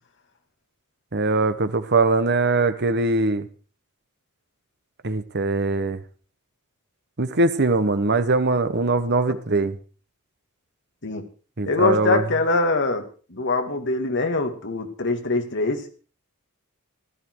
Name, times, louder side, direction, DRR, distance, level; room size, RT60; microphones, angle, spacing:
voice 1, 1.1-3.5 5.0-6.0 7.2-9.8 11.6-12.2, right 3 dB, 50° right, 12 dB, 1.2 m, -21 dB
voice 2, 11.7-13.0 13.3-15.8, left 3 dB, 55° left, 5 dB, 2.3 m, -23 dB
15.5 x 12.5 x 4.7 m, 0.39 s
head